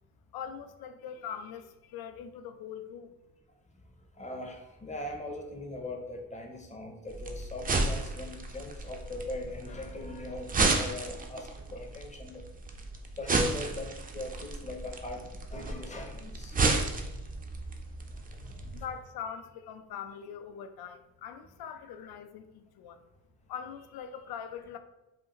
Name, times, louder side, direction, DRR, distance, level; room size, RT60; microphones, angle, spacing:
voice 1, 0.3-3.1 18.7-23.0 23.5-24.8, left 8 dB, 80° left, 8 dB, 0.5 m, -42 dB
voice 2, 4.2-12.5 13.2-15.2 15.5-16.6 18.3-18.8, left 1 dB, 20° left, 3 dB, 0.6 m, -40 dB
sound 1, 7.1-18.8, right 3 dB, 25° right, 0.4 m, -33 dB
5.0 x 2.4 x 2.9 m, 1.0 s
wide cardioid pair, 140°, 36 cm